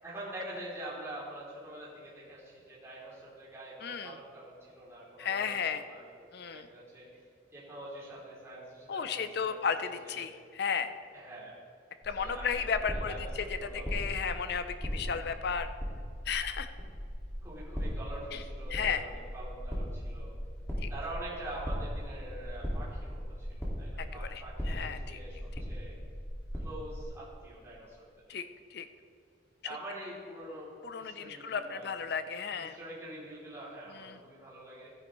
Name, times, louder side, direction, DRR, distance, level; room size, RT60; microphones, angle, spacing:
voice 1, 0.0-7.1 7.5-10.3 11.1-11.6 12.1-14.0 14.8-15.2 17.4-20.3 20.9-25.9 26.5-28.1 29.6-31.9 32.5-34.9, right 1 dB, 15° right, -8 dB, 2.9 m, -45 dB
voice 2, 3.8-4.2 5.2-5.8 6.3-6.7 8.9-10.9 12.0-15.7 16.3-16.7 18.3-18.4 18.7-19.0 20.8-20.9 24.0-25.2 28.3-28.5 28.7-28.9 30.8-32.8 33.9-34.2, left 6 dB, 60° left, 10 dB, 0.5 m, -34 dB
sound 1, 12.0-27.1, equal, 15° left, 1.9 m, -38 dB
13.0 x 9.8 x 3.1 m, 2.3 s
head